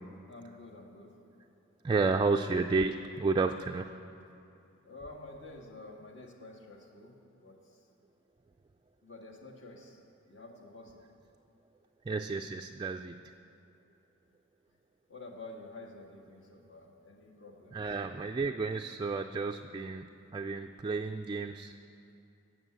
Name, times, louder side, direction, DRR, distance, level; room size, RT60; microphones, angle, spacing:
voice 1, 0.3-1.2 2.0-2.4 4.8-7.1 7.4-7.6 9.0-10.0 10.3-11.0 15.1-17.8, left 2 dB, 60° left, 0 dB, 1.8 m, -49 dB
voice 2, 1.8-3.9 12.1-13.3 17.7-20.1 20.3-21.7, right 4 dB, 20° right, 4 dB, 0.3 m, -31 dB
16.5 x 6.3 x 8.0 m, 2.7 s
head